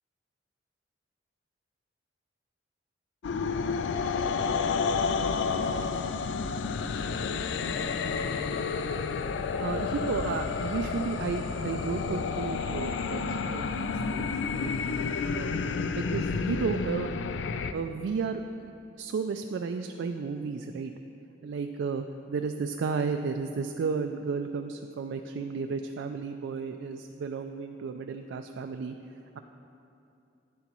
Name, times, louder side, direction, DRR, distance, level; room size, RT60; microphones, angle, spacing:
sound 1, 3.2-17.7, left 5 dB, 75° left, 0.4 m, -30 dB
voice 1, 9.6-14.7 15.3-15.6 15.9-17.1 17.7-20.9 21.4-29.0, right 5 dB, 85° right, 6 dB, 0.3 m, -33 dB
10.5 x 9.6 x 3.0 m, 2.8 s
head